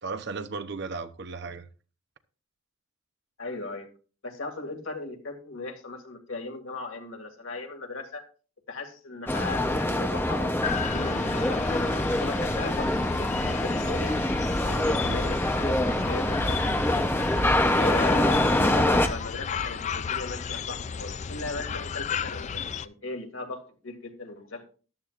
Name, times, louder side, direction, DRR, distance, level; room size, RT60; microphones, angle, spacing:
voice 1, 0.0-1.7 15.0-15.2 17.7-18.2, right 4 dB, 60° right, 0.8 m, -35 dB
voice 2, 3.4-3.9 4.2-8.2 8.7-11.9 12.1-14.1 14.7-17.1 17.7-24.7, left 3 dB, 90° left, 2.4 m, -37 dB
sound 1, 9.3-19.1, left 1 dB, 10° left, 0.7 m, -25 dB
sound 2, 10.6-22.9, left 6 dB, 35° left, 0.4 m, -34 dB
13.5 x 11.5 x 2.5 m
head